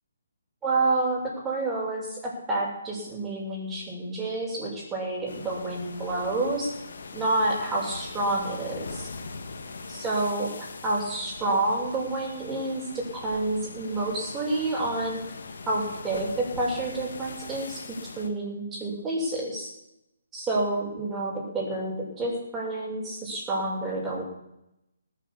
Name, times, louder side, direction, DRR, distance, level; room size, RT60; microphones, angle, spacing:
voice 1, 0.6-6.7 7.1-9.1 9.9-10.5 10.8-12.8 13.1-15.2 15.7-17.8 18.2-19.7 20.3-24.2, right 2 dB, 10° right, -4 dB, 6.1 m, -29 dB
sound 1, 5.3-18.3, left 3 dB, 60° left, 1.9 m, -41 dB
19.0 x 7.4 x 7.4 m, 0.88 s
figure-of-eight pair, 140°, 0 cm